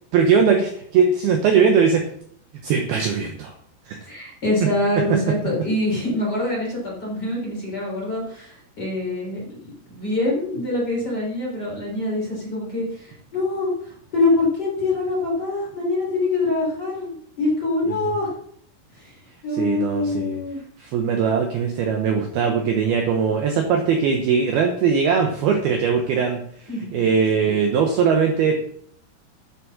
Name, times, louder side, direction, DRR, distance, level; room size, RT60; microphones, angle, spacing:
voice 1, 0.1-2.0 2.6-3.5 3.9-4.0 19.5-20.4 20.8-28.6, right 6 dB, 85° right, 3 dB, 2.2 m, -20 dB
voice 2, 4.1-9.4 9.9-18.3 18.9-20.6 26.7-27.0 27.4-27.5, left 2 dB, 20° left, -4 dB, 4.0 m, -25 dB
10.0 x 7.2 x 6.3 m, 0.64 s
omnidirectional pair, 6.0 m